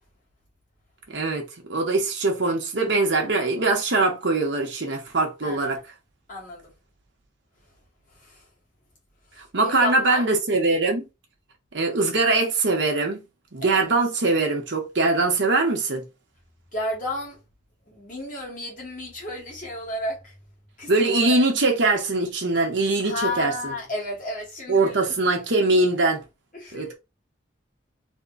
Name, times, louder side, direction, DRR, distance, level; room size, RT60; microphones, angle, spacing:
voice 1, 1.1-1.4 1.7-5.8 9.5-11.1 11.7-13.2 13.5-16.0 20.9-23.7 24.7-26.2 26.7-26.9, right 3 dB, 75° right, 1.0 m, -22 dB
voice 2, 5.4-5.8 6.3-6.7 8.1-8.4 9.3-10.2 13.6-13.8 16.7-17.4 17.9-20.4 20.8-21.4 23.0-25.1 26.5-27.0, left 1 dB, 45° left, 1.8 m, -32 dB
3.5 x 2.2 x 4.0 m
head